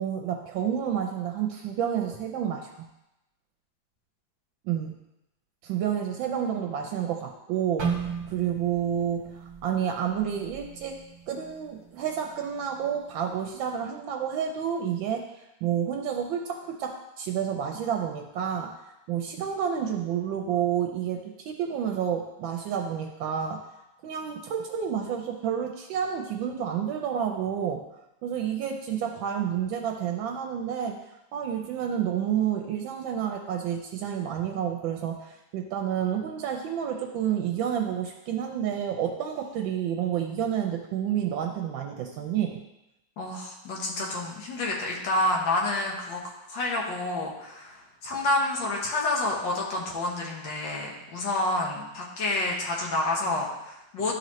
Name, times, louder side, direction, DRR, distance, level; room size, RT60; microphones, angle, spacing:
voice 1, 0.0-2.9 4.6-5.0 5.6-11.0 11.3-15.3 15.6-23.6 24.0-27.8 28.2-31.0 31.3-42.6, right 9 dB, 80° right, 3 dB, 1.3 m, -29 dB
sound 1, 7.8-11.8 12.2-12.4 13.1-13.4, right 6 dB, 60° right, 1.2 m, -35 dB
voice 2, 43.2-46.2 46.5-54.1, left 2 dB, 70° left, -2 dB, 1.8 m, -29 dB
11.5 x 4.0 x 3.1 m, 0.93 s
omnidirectional pair, 2.2 m